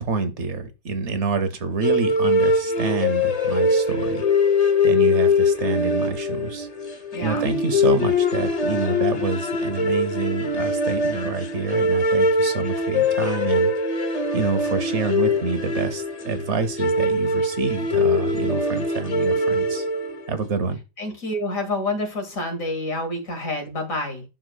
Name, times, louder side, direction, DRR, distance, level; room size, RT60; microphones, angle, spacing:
voice 1, 0.0-4.2 4.8-6.7 7.2-14.0 14.3-19.9 20.3-20.8, right 4 dB, 60° right, 1.2 m, -27 dB
sound 1, 1.8-20.3, left 2 dB, 35° left, 0.7 m, -22 dB
voice 2, 7.1-7.5 21.0-24.2, left 2 dB, 80° left, 2.5 m, -28 dB
9.2 x 6.4 x 2.3 m
omnidirectional pair, 1.4 m